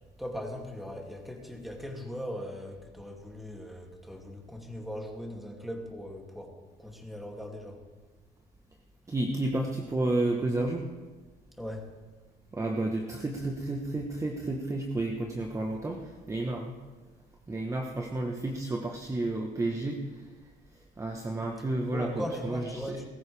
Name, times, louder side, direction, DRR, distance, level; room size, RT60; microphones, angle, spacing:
voice 1, 0.2-7.8 11.6-11.9 21.9-23.1, equal, ahead, 0 dB, 2.6 m, -39 dB
voice 2, 9.1-10.8 12.5-16.8 17.5-20.0 21.0-23.1, right 2 dB, 20° right, 2 dB, 1.3 m, -31 dB
21.0 x 14.0 x 3.5 m, 1.4 s
cardioid pair, 110°, 17 cm